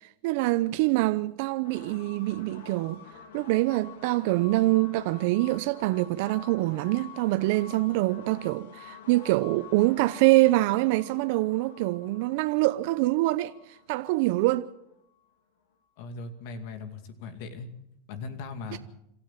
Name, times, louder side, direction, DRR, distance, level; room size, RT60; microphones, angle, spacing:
voice 1, 0.2-3.0 3.3-14.7 18.7-18.8, right 19 dB, 65° right, 0.7 m, -25 dB
sound 1, 1.6-15.3, left 7 dB, 80° left, 3.6 m, -48 dB
voice 2, 16.0-17.7 18.1-18.8, left 4 dB, 65° left, 2.4 m, -39 dB
27.0 x 13.0 x 7.4 m
hypercardioid pair, 105°, 0 cm